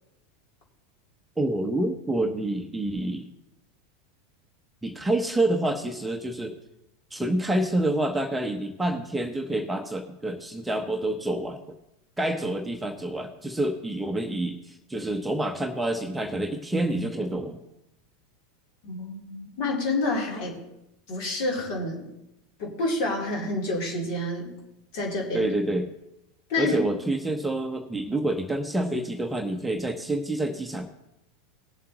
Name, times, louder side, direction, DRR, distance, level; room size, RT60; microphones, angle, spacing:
voice 1, 1.4-3.3 4.8-6.6 7.1-11.6 12.2-17.6 25.3-25.9 26.6-30.9, right 1 dB, 10° right, 4 dB, 0.9 m, -28 dB
voice 2, 18.8-20.6 21.1-22.1 22.6-24.5 24.9-25.5 26.5-26.8, left 2 dB, 50° left, -2 dB, 3.2 m, -28 dB
19.0 x 7.3 x 2.9 m, 0.87 s
figure-of-eight pair, 85°, 0 cm